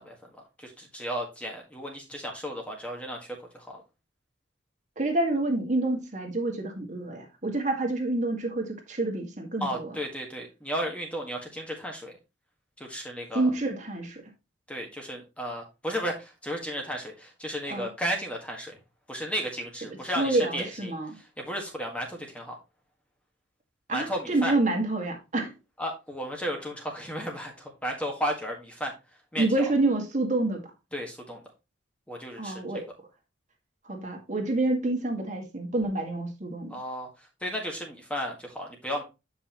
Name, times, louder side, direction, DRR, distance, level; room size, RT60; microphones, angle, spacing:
voice 1, 0.0-3.8 9.6-12.2 12.8-13.5 14.7-18.8 19.1-22.6 23.9-24.5 25.8-28.9 29.3-29.5 30.9-31.4 32.1-32.6 36.7-39.0, equal, 5° left, 1.7 m, -34 dB
voice 2, 5.0-10.0 13.3-14.2 17.7-17.9 20.2-21.1 23.9-25.5 29.4-30.6 32.4-32.9 33.8-36.8, right 2 dB, 40° right, 1.9 m, -28 dB
9.4 x 5.6 x 3.0 m
head